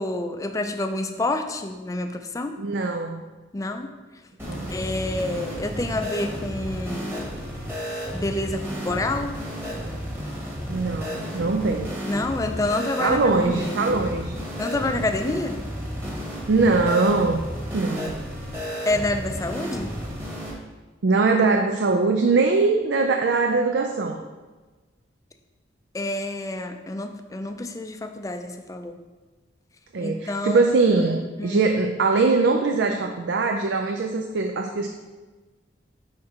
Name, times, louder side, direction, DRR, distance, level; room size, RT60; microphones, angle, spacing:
voice 1, 0.0-2.5 3.5-3.9 4.7-7.1 8.1-9.3 12.1-13.2 13.5-13.7 14.6-15.6 18.8-19.9 25.9-29.0 30.0-30.6 31.4-31.6, left 2 dB, 20° left, 7 dB, 0.4 m, -28 dB
voice 2, 2.6-3.3 4.5-4.7 10.7-11.9 13.0-14.4 16.5-17.4 17.7-18.1 21.0-24.2 29.9-34.9, right 3 dB, 75° right, 4 dB, 0.4 m, -22 dB
sound 1, 4.4-20.5, equal, 15° right, 1.2 m, -32 dB
5.6 x 4.4 x 4.9 m, 1.3 s
head